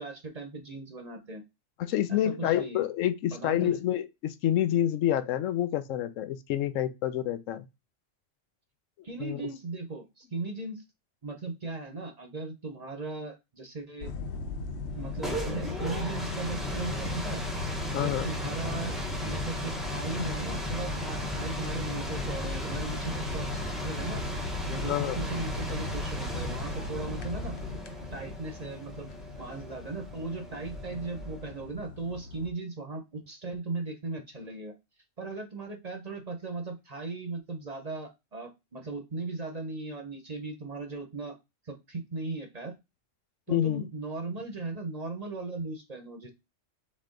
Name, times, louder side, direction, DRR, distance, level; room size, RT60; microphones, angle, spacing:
voice 1, 0.0-1.4 2.1-2.8 3.2-3.8 9.0-10.8 11.2-14.1 15.0-17.4 17.9-18.9 19.2-24.2 24.7-27.5 28.1-29.1 29.4-34.7 35.2-41.3 41.6-42.7 43.5-46.3, right 3 dB, 40° right, 0.7 m, -37 dB
voice 2, 1.8-7.6 9.2-9.4 17.9-18.3 24.9-25.2 43.5-43.8, left 11 dB, 85° left, 1.0 m, -28 dB
sound 1, 14.0-32.5, left 4 dB, 65° left, 0.9 m, -38 dB
sound 2, 14.9-31.6, equal, ahead, 0.7 m, -36 dB
4.2 x 3.4 x 3.7 m
omnidirectional pair, 1.3 m